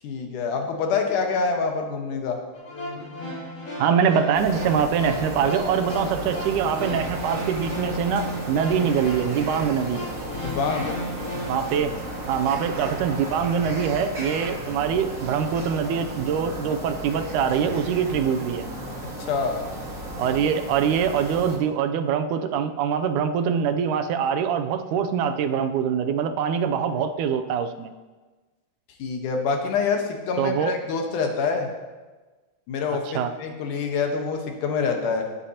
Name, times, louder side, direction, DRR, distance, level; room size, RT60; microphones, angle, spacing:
voice 1, 0.0-2.4 10.3-11.0 19.2-19.6 29.0-31.7 32.7-35.3, left 5 dB, 85° left, 3 dB, 2.7 m, -26 dB
sound 1, 2.5-11.8, left 1 dB, 40° left, 3.6 m, -35 dB
voice 2, 3.8-10.0 11.5-11.9 12.3-18.7 20.2-27.9 30.4-30.7 33.1-33.3, right 7 dB, 80° right, 8 dB, 2.1 m, -24 dB
sound 2, 4.3-21.6, right 1 dB, 30° right, 1.8 m, -34 dB
17.5 x 8.5 x 2.9 m, 1.3 s
omnidirectional pair, 3.5 m